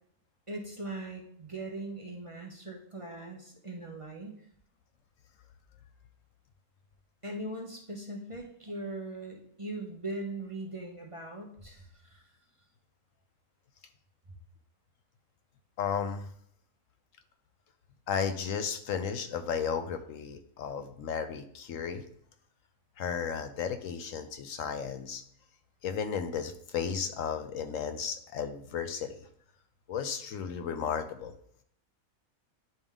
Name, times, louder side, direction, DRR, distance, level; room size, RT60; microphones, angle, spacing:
voice 1, 0.5-4.5 7.2-12.2, right 2 dB, 25° right, 0 dB, 1.0 m, -40 dB
voice 2, 15.8-16.3 18.1-22.0 23.0-25.2 25.8-29.2 29.9-31.3, left 7 dB, 70° left, 8 dB, 1.0 m, -34 dB
10.5 x 3.5 x 3.5 m, 0.66 s
omnidirectional pair, 1.5 m